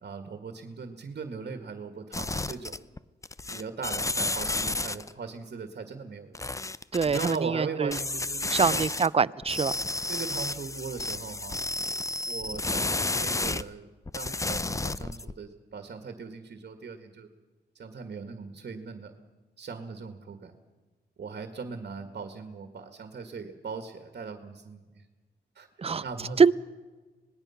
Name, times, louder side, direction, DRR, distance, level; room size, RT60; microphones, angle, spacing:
voice 1, 0.0-2.8 3.5-6.4 7.0-8.8 10.1-11.6 12.3-13.9 14.1-17.3 17.8-19.2 19.6-20.5 21.2-24.8 25.6-25.7 26.0-26.4, right 5 dB, 65° right, 6 dB, 1.9 m, -39 dB
sound 1, 2.1-3.0 3.2-5.1 6.3-7.4 7.9-9.1 9.4-13.6 14.1-15.3, left 2 dB, 20° left, 0.6 m, -31 dB
voice 2, 6.9-8.0 8.5-9.7 25.8-26.0 26.4-26.5, right 5 dB, 35° right, 17 dB, 0.6 m, -24 dB
26.0 x 20.0 x 5.9 m, 1.3 s
cardioid pair, 85°, 18 cm